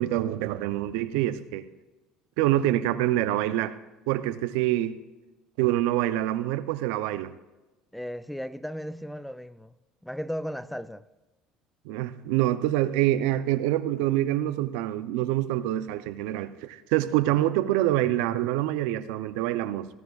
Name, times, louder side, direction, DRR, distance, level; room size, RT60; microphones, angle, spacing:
voice 1, 0.0-1.7 2.4-3.8 4.1-5.0 5.6-7.3 11.9-19.9, right 14 dB, 80° right, 0.5 m, -26 dB
voice 2, 7.9-9.7 10.0-11.0, equal, ahead, 0.3 m, -35 dB
16.0 x 9.3 x 2.3 m
supercardioid pair, 95°, 0 cm